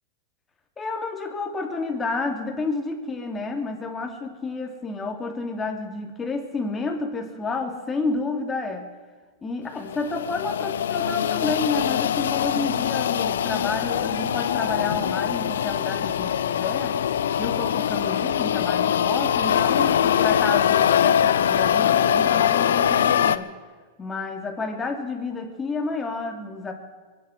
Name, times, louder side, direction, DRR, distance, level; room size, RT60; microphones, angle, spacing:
voice 1, 0.8-8.9 9.4-17.0 17.4-23.5 24.0-26.7, left 3 dB, 20° left, 3 dB, 2.9 m, -30 dB
sound 1, 9.9-23.4, left 9 dB, 80° left, 0.8 m, -22 dB
23.0 x 9.9 x 6.3 m, 1.5 s
hypercardioid pair, 115°, 0 cm